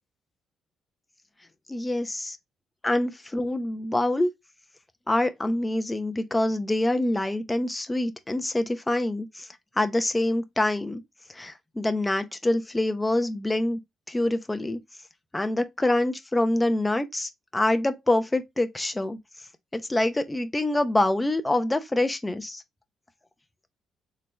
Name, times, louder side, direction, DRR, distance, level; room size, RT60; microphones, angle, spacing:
voice 1, 1.7-2.4 2.8-4.3 5.1-9.5 9.8-11.0 11.3-13.8 14.1-14.8 15.3-19.2 19.7-22.6, left 1 dB, 15° left, 0.8 m, -25 dB
4.3 x 3.1 x 3.2 m
cardioid pair, 90°, 0 cm